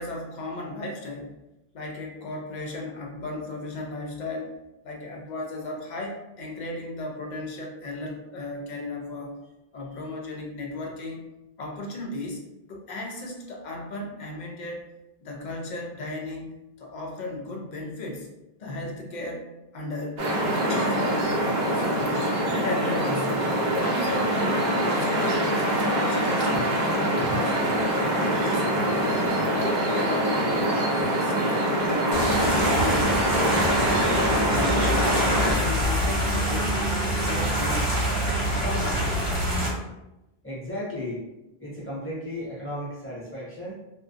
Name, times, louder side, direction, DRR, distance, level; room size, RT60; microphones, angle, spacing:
voice 1, 0.0-1.4 1.7-4.5 4.8-9.3 9.7-11.3 11.6-12.4 12.7-14.9 15.2-18.3 18.6-19.4 19.7-20.2 20.7-21.2 21.7-22.2 22.5-23.5 23.8-27.6 28.0-30.6 30.9-33.1 33.4-34.8 35.1-38.1 38.6-39.1, left 2 dB, 55° left, 0 dB, 0.6 m, -35 dB
sound 1, 20.2-35.5, right 1 dB, 50° right, 0.7 m, -24 dB
sound 2, 32.1-39.7, equal, 85° right, 1.1 m, -25 dB
voice 2, 40.4-41.3 41.6-43.7, left 1 dB, 15° left, -7 dB, 0.7 m, -34 dB
2.5 x 2.1 x 2.4 m, 0.94 s
omnidirectional pair, 1.0 m